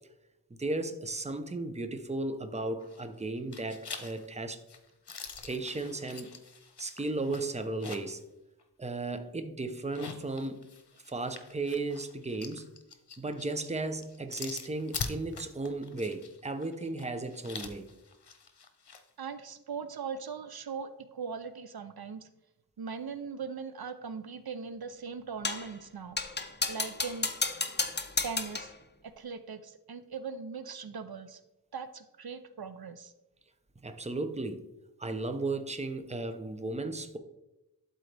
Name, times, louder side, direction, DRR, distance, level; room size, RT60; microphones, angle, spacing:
voice 1, 0.6-4.6 5.4-6.4 6.8-8.2 8.8-10.6 11.1-12.6 13.2-17.9 33.8-34.7 35.0-37.2, right 2 dB, 15° right, 0.6 m, -35 dB
sound 1, 2.8-3.2 3.5-8.2 8.6-8.7 9.8-19.0, left 5 dB, 80° left, 0.8 m, -44 dB
voice 2, 19.2-22.3 22.8-26.2 26.7-27.3 28.2-28.7 29.0-31.4 31.7-33.1, right 5 dB, 65° right, 0.5 m, -40 dB
sound 2, 25.4-25.7 26.2-28.8, left 3 dB, 25° left, 0.6 m, -32 dB
11.5 x 4.1 x 3.3 m
wide cardioid pair, 55°, 39 cm